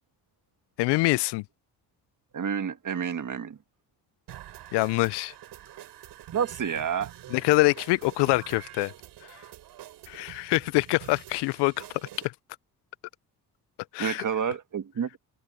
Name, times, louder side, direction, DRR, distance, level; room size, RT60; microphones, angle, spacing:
voice 1, 0.8-1.4 4.7-5.3 7.3-8.9 10.1-11.7 13.9-14.2, left 23 dB, 90° left, 0.5 m, -24 dB
voice 2, 2.3-3.6 6.3-7.1 14.0-15.2, right 7 dB, 50° right, 1.9 m, -29 dB
sound 1, 4.3-12.3, right 13 dB, 80° right, 3.6 m, -46 dB
open air
supercardioid pair, 60°, 40 cm